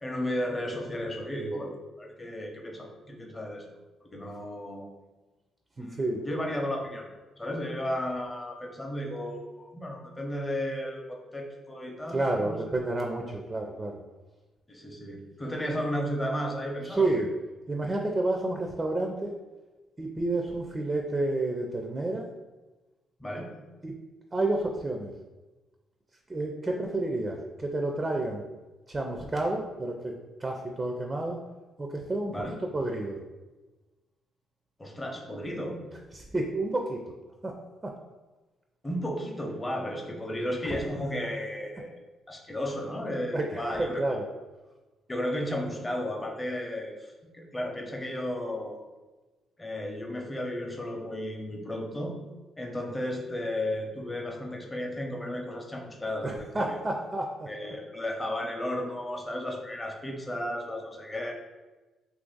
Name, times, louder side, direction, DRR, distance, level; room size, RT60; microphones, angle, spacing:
voice 1, 0.0-3.7 4.0-4.9 5.8-7.1 7.4-12.6 14.7-17.2 23.2-23.5 32.3-32.5 34.8-35.8 38.8-42.0 42.3-44.0 45.1-48.8 49.6-52.2 52.6-56.8 57.5-61.3, equal, 20° left, 1 dB, 0.6 m, -34 dB
voice 2, 5.8-6.2 12.1-14.0 16.8-17.3 17.7-19.3 20.0-22.3 23.8-23.9 24.3-25.1 26.3-28.4 28.9-31.4 31.8-32.4 32.7-33.2 36.1-37.0 37.4-37.5 37.8-37.9 40.6-40.7 43.3-44.2 56.2-57.5, right 2 dB, 25° right, 2 dB, 0.4 m, -30 dB
2.8 x 2.5 x 3.8 m, 1.2 s
cardioid pair, 90°, 0 cm